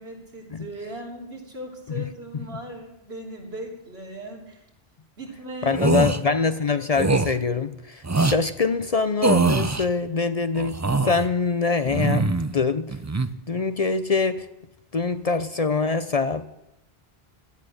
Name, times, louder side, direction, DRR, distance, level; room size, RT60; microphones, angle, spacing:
voice 1, 0.0-4.6 5.2-6.1, right 1 dB, 85° right, 3.7 m, -38 dB
voice 2, 5.6-12.3 12.5-13.0 13.5-14.5 14.9-16.5, left 4 dB, 45° left, 0.6 m, -24 dB
sound 1, 5.7-6.2 6.9-7.3 8.0-8.4 9.2-9.9 10.6-11.3 11.9-12.5 12.9-13.3, right 3 dB, 20° right, 0.5 m, -22 dB
16.5 x 12.0 x 6.4 m
omnidirectional pair, 1.0 m